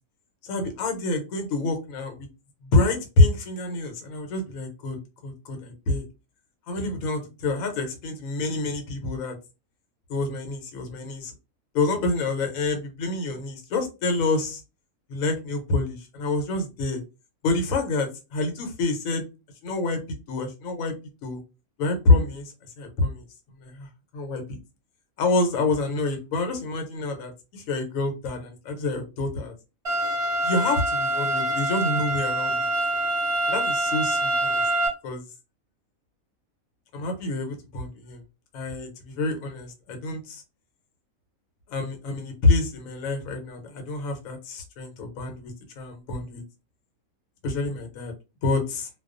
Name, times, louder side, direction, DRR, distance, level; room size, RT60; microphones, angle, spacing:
voice 1, 0.4-2.3 2.6-5.0 5.2-6.0 6.7-9.4 10.1-11.3 11.7-14.6 15.1-17.0 17.4-19.3 19.6-20.0 20.3-20.9 21.2-21.4 21.8-23.2 23.6-23.9 24.1-24.6 25.2-29.5 30.4-32.6 33.5-34.6 35.0-35.2 36.9-38.2 38.5-40.4 41.7-46.4 47.4-48.1 48.4-48.9, left 2 dB, 75° left, 5 dB, 1.1 m, -27 dB
sound 1, 29.8-34.9, right 1 dB, 35° right, 0.6 m, -25 dB
2.3 x 2.3 x 2.4 m, 0.28 s
omnidirectional pair, 1.4 m